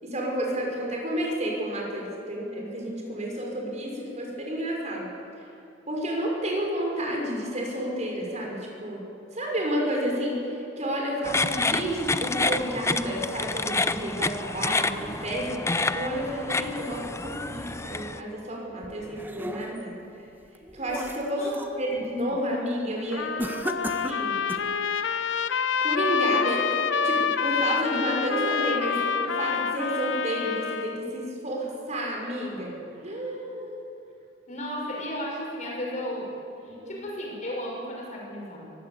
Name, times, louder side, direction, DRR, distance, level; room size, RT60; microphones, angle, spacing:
voice 1, 0.0-5.1 5.9-9.0 9.3-19.9 20.7-21.5 21.8-23.3 23.9-24.4 25.8-32.8 33.0-33.8 36.8-37.0, equal, 40° right, -1 dB, 5.8 m, -30 dB
sound 1, 11.2-18.2, left 3 dB, 15° left, 0.6 m, -29 dB
sound 2, 18.8-20.0 20.5-21.8 22.2-22.5 23.4-24.8, right 1 dB, 10° right, 1.2 m, -36 dB
voice 2, 21.4-21.9 34.5-36.3 36.6-38.7, equal, 40° left, -2 dB, 6.6 m, -34 dB
Trumpet, 23.1-31.0, left 6 dB, 75° left, 0.9 m, -27 dB
23.0 x 16.0 x 8.3 m, 2.8 s
head